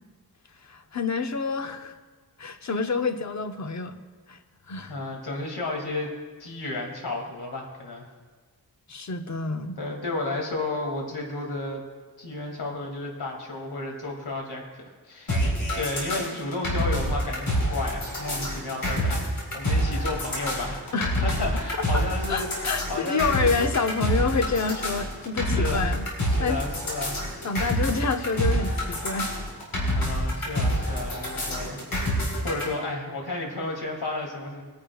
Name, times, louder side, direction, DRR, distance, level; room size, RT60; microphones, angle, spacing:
voice 1, 0.6-1.9 2.4-4.0 4.3-4.4 4.7-4.9 8.9-9.8 20.9-21.2 22.3-26.1 26.4-26.6 27.4-29.3, left 4 dB, 45° left, 7 dB, 0.8 m, -28 dB
voice 2, 4.9-6.1 6.4-8.1 9.8-11.8 12.2-15.4 15.7-20.8 21.1-23.5 25.4-25.9 26.3-27.2 29.9-31.8 32.4-34.6, left 2 dB, 80° left, 0 dB, 2.5 m, -32 dB
sound 1, 15.3-32.6, equal, 65° left, 4.0 m, -27 dB
21.5 x 10.0 x 2.4 m, 1.4 s
wide cardioid pair, 100°, 38 cm